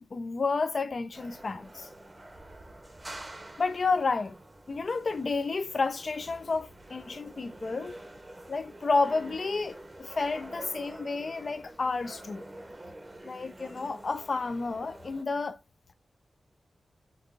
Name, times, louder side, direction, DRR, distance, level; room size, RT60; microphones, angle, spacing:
voice 1, 0.1-1.9 3.6-4.4 4.7-8.0 8.5-12.4 13.2-15.6, left 4 dB, 50° left, 0.4 m, -31 dB
sound 1, 1.1-15.2, right 1 dB, 25° right, 0.7 m, -47 dB
4.6 x 2.5 x 3.6 m
wide cardioid pair, 100°, 0 cm